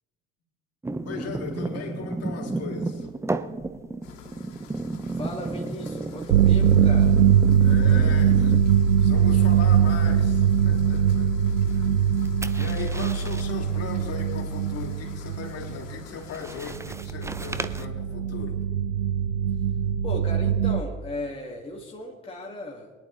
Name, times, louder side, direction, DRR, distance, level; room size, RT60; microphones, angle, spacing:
sound 1, 0.8-9.0 9.3-9.7 12.0-13.5 16.1-17.8, right 3 dB, 5° right, 0.6 m, -33 dB
voice 1, 1.0-3.1 7.6-8.6 9.0-11.3 11.7-11.9 12.6-18.6, left 4 dB, 40° left, -1 dB, 3.4 m, -37 dB
sound 2, 4.0-16.8, left 7 dB, 70° left, 2.1 m, -47 dB
voice 2, 5.1-7.2 20.0-22.9, left 1 dB, 15° left, -1 dB, 2.0 m, -36 dB
sound 3, 6.3-16.0 16.9-20.8, right 8 dB, 75° right, 0.5 m, -21 dB
22.0 x 11.0 x 3.2 m, 1.4 s
figure-of-eight pair, 65°, 38 cm